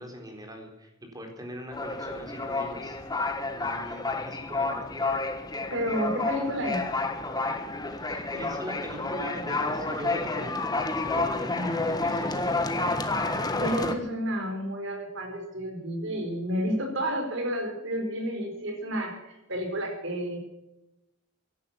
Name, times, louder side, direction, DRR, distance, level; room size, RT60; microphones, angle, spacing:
voice 1, 0.0-5.1 7.9-12.9, equal, 20° right, 3 dB, 4.1 m, -41 dB
sound 1, 1.7-14.0, left 3 dB, 20° left, 1.5 m, -30 dB
voice 2, 5.7-6.8 11.5-11.9 13.6-20.4, equal, 65° right, 4 dB, 4.6 m, -31 dB
16.0 x 11.5 x 7.3 m, 0.94 s
head